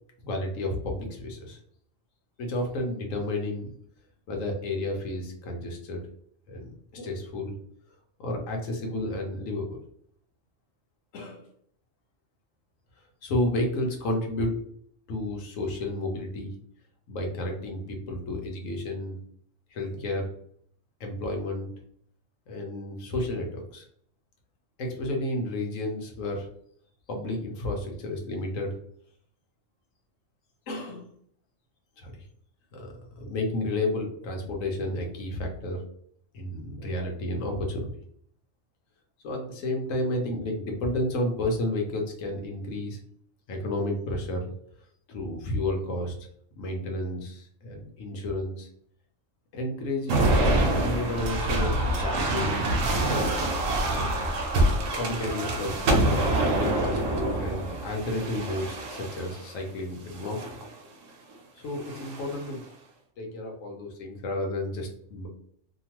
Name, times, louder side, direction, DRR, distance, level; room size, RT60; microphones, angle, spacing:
voice 1, 0.2-1.6 2.4-3.7 4.3-6.0 6.5-7.5 8.2-9.8 11.1-11.5 13.2-14.6 15.1-16.5 17.1-19.2 19.7-20.3 21.0-21.7 22.5-23.8 24.8-26.5 27.1-28.8 30.7-31.1 32.0-32.1 32.7-35.8 36.3-37.9 39.2-43.0 43.5-44.5 45.1-46.1 46.6-48.7 49.5-52.8 53.9-54.3 55.0-60.6 61.6-62.6 63.2-65.3, left 1 dB, 90° left, 2 dB, 1.1 m, -31 dB
sound 1, 50.1-59.5 60.2-60.7 61.8-62.5, right 1 dB, 90° right, 1.0 m, -26 dB
2.9 x 2.2 x 2.9 m, 0.66 s
omnidirectional pair, 1.3 m